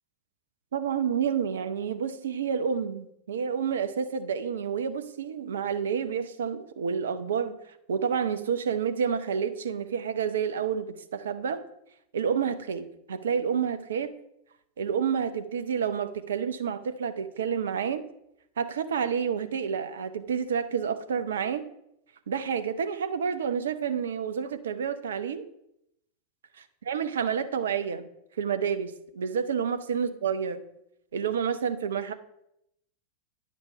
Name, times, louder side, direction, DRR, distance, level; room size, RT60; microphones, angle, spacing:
voice 1, 0.7-7.6 7.9-11.6 12.1-14.1 14.8-18.0 18.6-21.7 22.3-25.5 26.6-28.1 28.4-30.6 31.1-32.1, right 7 dB, 65° right, 11 dB, 0.6 m, -29 dB
9.4 x 5.3 x 5.4 m, 0.77 s
figure-of-eight pair, 90°, 0 cm